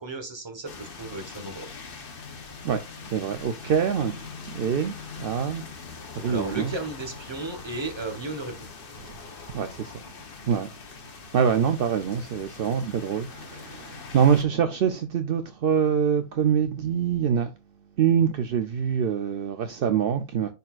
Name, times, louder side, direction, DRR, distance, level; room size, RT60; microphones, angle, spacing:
voice 1, 0.0-1.7 6.2-8.7, right 2 dB, 20° right, 1.1 m, -34 dB
sound 1, 0.7-14.4, left 4 dB, 40° left, 1.1 m, -42 dB
voice 2, 2.6-4.2 4.4-5.6 6.2-6.7 9.5-10.0 10.5-10.7 11.3-17.5 18.0-20.5, right 7 dB, 65° right, 0.6 m, -25 dB
10.5 x 4.2 x 2.4 m
omnidirectional pair, 1.6 m